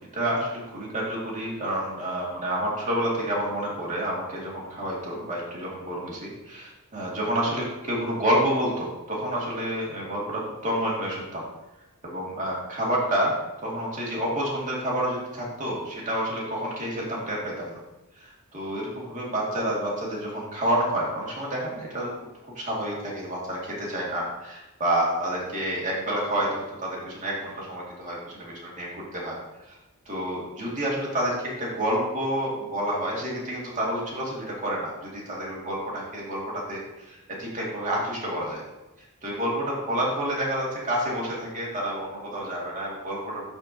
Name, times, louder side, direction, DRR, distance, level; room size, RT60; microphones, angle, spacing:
voice 1, 0.1-11.4 12.0-13.4 13.6-17.8 18.2-22.1 22.6-29.3 29.7-29.8 30.1-36.8 37.1-38.6 39.2-43.4, right 1 dB, 35° right, -5 dB, 2.2 m, -29 dB
11.0 x 4.5 x 2.8 m, 1.0 s
head